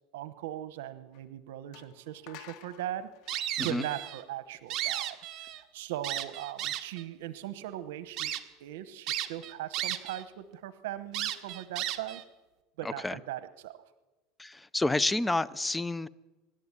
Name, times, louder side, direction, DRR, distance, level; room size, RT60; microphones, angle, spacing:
voice 1, 0.1-3.1 3.6-5.2 5.5-8.3 8.6-12.2 12.8-13.8, right 12 dB, 85° right, 13 dB, 1.0 m, -39 dB
sound 1, 1.1-1.2 1.7-4.5, left 12 dB, 60° left, 2.3 m, -52 dB
sound 2, 3.3-4.2 4.5-5.6 6.0-7.0 7.6-7.7 8.2-8.4 9.1-10.2 10.5-10.6 11.1-12.2, right 12 dB, 45° right, 1.6 m, -34 dB
voice 2, 14.4-16.1, left 2 dB, 10° left, 19 dB, 0.6 m, -29 dB
25.0 x 12.0 x 9.8 m, 1.1 s
supercardioid pair, 135°, 0 cm